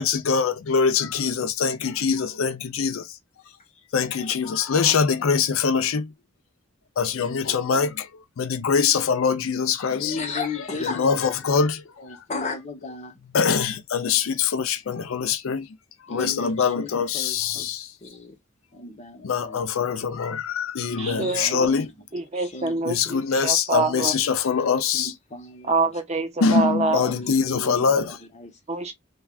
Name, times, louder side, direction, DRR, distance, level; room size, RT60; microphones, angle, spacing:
voice 1, 0.0-3.1 3.9-6.1 7.0-8.1 8.4-10.4 10.8-11.8 12.1-12.2 13.3-15.7 16.1-17.9 19.2-21.9 22.8-25.1 26.4-28.2, left 6 dB, 75° left, 0.5 m, -23 dB
voice 2, 4.4-5.0 7.2-7.9 9.9-11.3 12.0-13.2 16.1-16.9 17.1-17.7 18.0-18.4 18.7-19.6 20.9-21.9 22.3-22.9 24.2-25.8 26.9-28.5, left 3 dB, 35° left, 0.9 m, -35 dB
voice 3, 21.0-21.7 22.1-24.1 25.6-27.1 28.7-28.9, right 3 dB, 30° right, 0.6 m, -26 dB
3.2 x 2.3 x 2.3 m
head